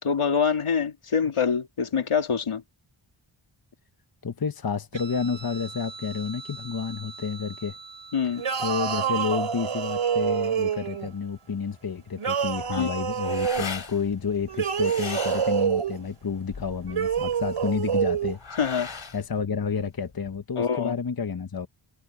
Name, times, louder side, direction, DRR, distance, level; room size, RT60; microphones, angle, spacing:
voice 1, 0.0-2.6 8.1-8.4 12.7-12.9 18.6-18.9 20.6-20.9, left 6 dB, 85° left, 2.9 m, -25 dB
voice 2, 4.2-7.8 8.6-18.4 19.1-21.7, left 6 dB, 45° left, 1.1 m, -30 dB
Guitar, 4.9-11.9, right 4 dB, 65° right, 6.9 m, -45 dB
sound 1, 8.4-11.1 12.2-13.7 14.5-16.0 16.9-18.4, right 8 dB, 85° right, 3.1 m, -27 dB
sound 2, 12.5-20.4, left 5 dB, 65° left, 3.3 m, -40 dB
wide cardioid pair, 100°, 49 cm